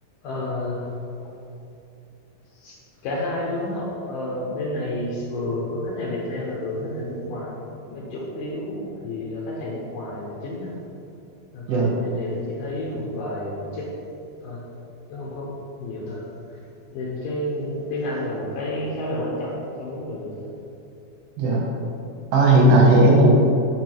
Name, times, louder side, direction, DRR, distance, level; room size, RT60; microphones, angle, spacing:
voice 1, 0.2-0.9 2.6-2.8 3.0-7.6 7.9-10.7 11.5-13.9 14.4-14.6 15.1-15.5 15.8-16.2 16.5-16.6 16.9-20.5, left 1 dB, 70° left, -5 dB, 2.2 m, -30 dB
voice 2, 22.3-23.3, right 2 dB, 90° right, -3 dB, 3.8 m, -15 dB
7.5 x 6.0 x 4.5 m, 2.7 s
omnidirectional pair, 4.8 m